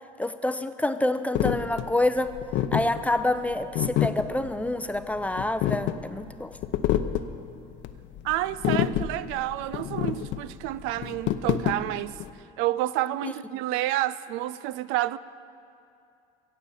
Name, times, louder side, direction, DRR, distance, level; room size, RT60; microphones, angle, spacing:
voice 1, 0.2-2.4 2.7-6.6 13.2-13.3, left 1 dB, 5° left, 0.5 m, -27 dB
sound 1, 1.3-12.3, left 11 dB, 65° left, 0.7 m, -28 dB
voice 2, 8.2-12.2 12.6-15.2, right 15 dB, 75° right, 0.4 m, -29 dB
16.5 x 7.7 x 7.1 m
supercardioid pair, 95°, 21 cm